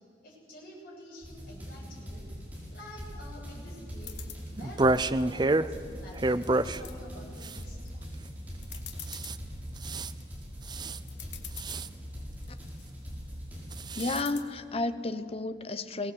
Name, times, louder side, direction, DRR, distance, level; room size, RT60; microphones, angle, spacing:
voice 1, 0.2-2.3 2.7-4.2 4.5-7.8, left 1 dB, 50° left, -6 dB, 7.4 m, -48 dB
sound 1, 1.2-14.0, equal, 10° right, 5.6 m, -42 dB
sound 2, 4.0-4.4 4.9-5.7 6.1-6.9 7.4-7.9 8.2-8.3 8.6-9.4 9.9-10.2 10.8-10.9 11.1-11.8 12.3-12.9 14.0-14.4, left 10 dB, 90° left, 1.7 m, -45 dB
sound 3, 4.6-5.7 6.2-6.8 7.4-7.6 9.1-9.4 9.8-10.1 10.7-11.0 11.6-11.9 13.7-14.2, right 2 dB, 25° right, 0.5 m, -28 dB
voice 2, 14.0-16.1, left 2 dB, 35° left, 11 dB, 0.9 m, -32 dB
22.5 x 18.0 x 8.2 m, 2.5 s
head